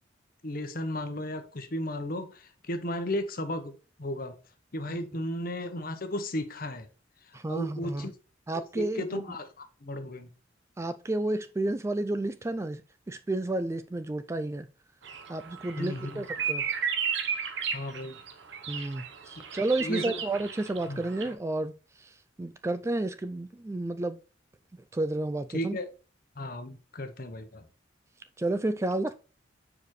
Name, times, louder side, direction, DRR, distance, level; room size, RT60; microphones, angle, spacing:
voice 1, 0.4-3.7 4.0-4.4 4.7-6.9 7.3-8.1 8.7-10.3 15.8-16.2 17.7-18.2 19.8-20.1 20.9-21.0 25.5-25.9 26.4-27.6, left 1 dB, 50° left, 0.9 m, -34 dB
voice 2, 7.3-8.1 8.5-9.2 10.8-12.8 13.1-14.7 15.3-16.7 18.7-21.7 22.0-24.2 24.9-25.8 28.4-29.1, right 2 dB, 15° right, 0.3 m, -31 dB
sound 1, 15.0-21.3, right 7 dB, 70° right, 0.9 m, -34 dB
6.7 x 5.0 x 3.1 m
head